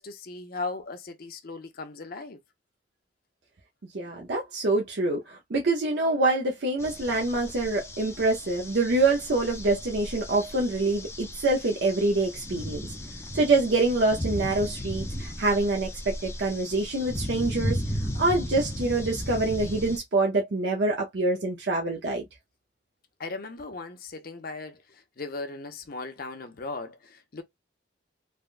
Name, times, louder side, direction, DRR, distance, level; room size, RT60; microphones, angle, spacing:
voice 1, 0.0-2.4 23.2-27.4, left 3 dB, 55° left, 0.7 m, -37 dB
voice 2, 3.9-12.8 13.3-17.8 18.1-22.2, right 2 dB, 65° right, 0.6 m, -25 dB
sound 1, 6.8-20.0, equal, 15° left, 0.5 m, -35 dB
3.4 x 2.2 x 2.5 m
head